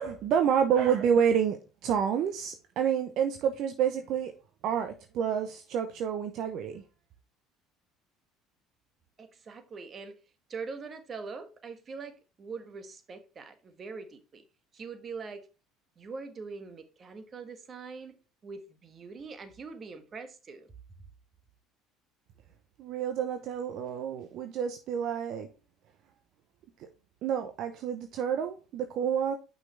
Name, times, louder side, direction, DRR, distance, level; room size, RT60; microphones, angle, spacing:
voice 1, 0.0-4.3 4.6-6.8 22.8-25.5 26.8-26.9 27.2-29.4, right 8 dB, 60° right, 0.8 m, -29 dB
voice 2, 9.2-10.2 10.5-14.4 14.7-15.5 16.0-18.2 18.4-20.7, right 4 dB, 40° right, 1.4 m, -43 dB
6.1 x 5.7 x 3.3 m
hypercardioid pair, 75°, 0 cm